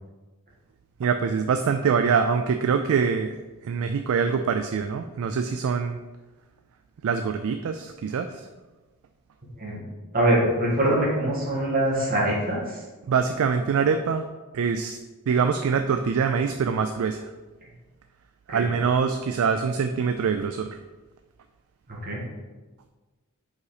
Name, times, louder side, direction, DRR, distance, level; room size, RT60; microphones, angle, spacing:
voice 1, 1.0-3.4 3.6-6.0 7.0-8.5 13.1-14.2 14.5-15.0 15.3-17.3 18.5-20.7, right 6 dB, 65° right, 7 dB, 0.3 m, -24 dB
voice 2, 10.1-12.8 18.5-18.7 21.9-22.2, right 1 dB, 40° right, -4 dB, 1.8 m, -24 dB
4.9 x 4.1 x 4.9 m, 1.2 s
head